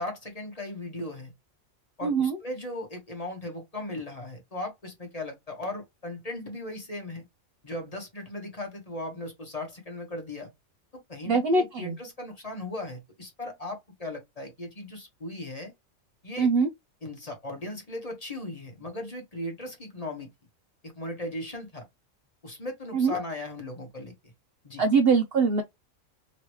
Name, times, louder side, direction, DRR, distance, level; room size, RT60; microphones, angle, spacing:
voice 1, 0.0-1.3 2.0-7.2 7.6-10.5 10.9-15.7 16.2-16.5 17.0-20.3 20.8-21.9 22.4-24.3 24.6-24.8, left 1 dB, 30° left, 1.2 m, -37 dB
voice 2, 2.0-2.4 11.2-12.0 16.4-16.7 22.9-23.1 24.8-25.6, right 4 dB, 60° right, 0.7 m, -23 dB
3.1 x 2.8 x 3.0 m
omnidirectional pair, 1.4 m